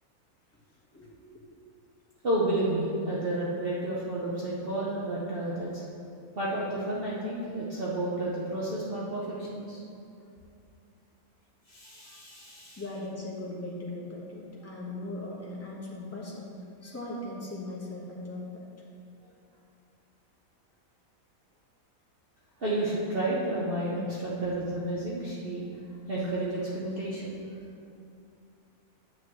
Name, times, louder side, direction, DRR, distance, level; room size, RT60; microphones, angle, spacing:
voice 1, 2.2-5.8 6.3-9.8 11.7-12.8 22.6-25.6 26.1-27.4, right 1 dB, 45° right, -7 dB, 1.0 m, -31 dB
voice 2, 12.8-16.5 16.8-18.6, left 2 dB, 10° left, -5 dB, 1.1 m, -38 dB
8.9 x 7.8 x 3.1 m, 2.6 s
omnidirectional pair, 1.5 m